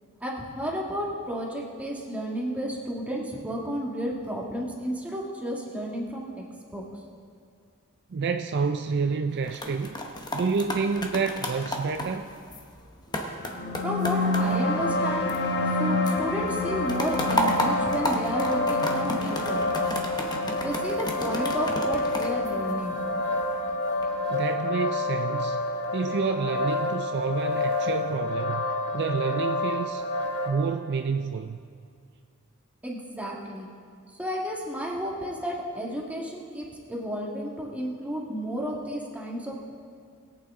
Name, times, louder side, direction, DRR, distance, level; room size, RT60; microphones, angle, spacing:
voice 1, 0.2-6.4 6.7-6.9 13.8-15.3 15.8-19.8 20.6-23.0 32.8-33.7 34.1-39.6, equal, 5° right, -3 dB, 1.7 m, -32 dB
voice 2, 8.1-9.9 10.3-12.3 24.3-25.6 25.9-28.7 28.9-30.0 30.4-31.6, right 5 dB, 50° right, 7 dB, 0.4 m, -28 dB
sound 1, 9.3-15.8 16.1-23.3 23.8-24.1, left 1 dB, 20° left, 1.0 m, -33 dB
sound 2, 13.4-24.4, left 2 dB, 50° left, 1.2 m, -31 dB
sound 3, 14.4-30.5, left 2 dB, 70° left, 1.8 m, -29 dB
21.5 x 8.7 x 3.7 m, 2.2 s
head